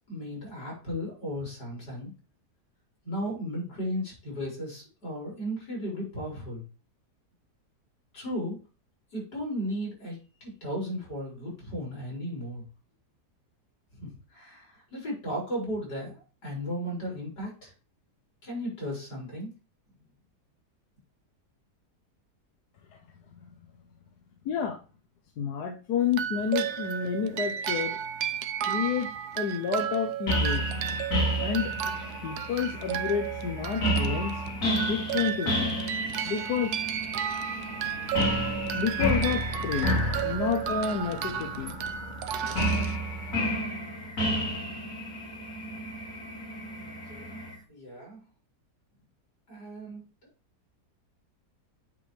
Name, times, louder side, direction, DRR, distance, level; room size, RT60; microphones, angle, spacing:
voice 1, 0.1-2.1 3.0-6.6 8.1-8.6 9.1-12.7 13.9-17.7 18.4-19.5 46.8-47.4 47.7-48.2 49.5-50.0, equal, 90° left, -4 dB, 5.3 m, -35 dB
voice 2, 24.4-24.8 25.4-28.0 28.6-29.1 29.4-30.6 31.4-31.7 32.2-34.4 34.9-35.8 36.2-36.8 38.7-40.0 40.2-41.7, left 7 dB, 75° left, 3 dB, 1.4 m, -29 dB
sound 1, 26.1-43.5, right 9 dB, 75° right, 1.2 m, -33 dB
sound 2, 30.3-47.5, equal, 55° left, 2.1 m, -31 dB
9.0 x 5.2 x 3.3 m, 0.34 s
omnidirectional pair, 1.8 m